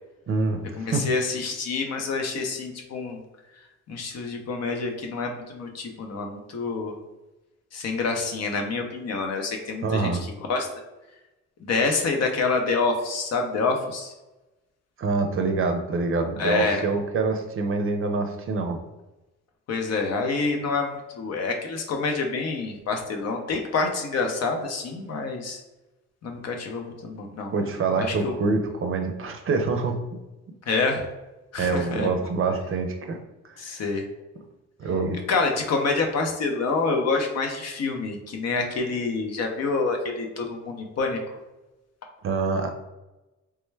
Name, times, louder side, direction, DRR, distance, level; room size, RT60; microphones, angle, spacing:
voice 1, 0.3-0.6 0.9-1.1 9.8-10.2 15.0-18.8 27.5-30.0 31.6-33.2 33.6-33.8 34.8-35.2 42.2-42.7, right 4 dB, 45° right, 4 dB, 0.5 m, -25 dB
voice 2, 0.8-3.2 3.9-6.9 7.7-10.7 11.6-14.1 16.4-16.9 19.7-25.6 26.2-27.5 28.0-28.3 30.7-31.1 31.5-32.1 33.6-34.0 35.3-41.2, left 4 dB, 55° left, 3 dB, 0.7 m, -27 dB
3.3 x 2.2 x 3.2 m, 1.0 s
cardioid pair, 90°, 30 cm